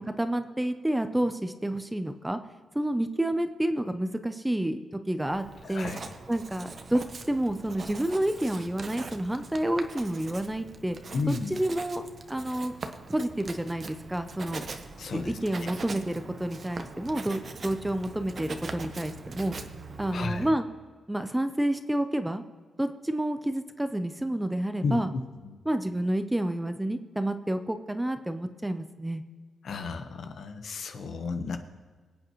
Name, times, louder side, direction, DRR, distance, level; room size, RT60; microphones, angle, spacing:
voice 1, 0.0-2.4 2.7-5.9 6.3-7.0 7.3-11.0 11.3-12.7 13.1-14.6 15.1-19.6 20.0-20.6 21.1-22.4 22.8-25.1 25.7-29.2, right 1 dB, 10° right, 9 dB, 0.6 m, -29 dB
Writing, 5.2-20.6, right 4 dB, 40° right, 0.9 m, -42 dB
voice 2, 5.6-6.0 11.1-11.6 15.0-15.3 20.1-20.5 24.8-25.5 29.6-31.6, left 4 dB, 65° left, 7 dB, 1.1 m, -33 dB
23.5 x 8.5 x 3.1 m, 1.5 s
cardioid pair, 115°, 0 cm